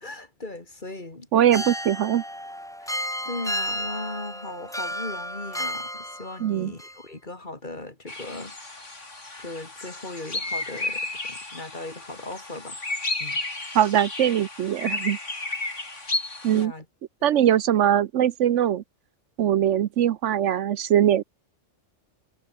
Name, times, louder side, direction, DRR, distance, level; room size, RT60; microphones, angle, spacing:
voice 1, 0.0-1.3 1.5-1.7 2.8-2.9 3.2-8.6 9.4-12.8 13.2-13.4 16.5-16.8 17.2-17.4, left 2 dB, 40° left, 3.2 m, -38 dB
voice 2, 1.3-2.2 6.4-6.7 13.7-15.2 16.4-16.7 17.2-18.8 19.4-21.2, right 10 dB, 70° right, 1.0 m, -21 dB
sound 1, 1.5-6.5 6.8-7.0, equal, 5° left, 2.0 m, -32 dB
sound 2, 8.1-16.6, left 2 dB, 70° left, 4.6 m, -33 dB
omnidirectional pair, 1.3 m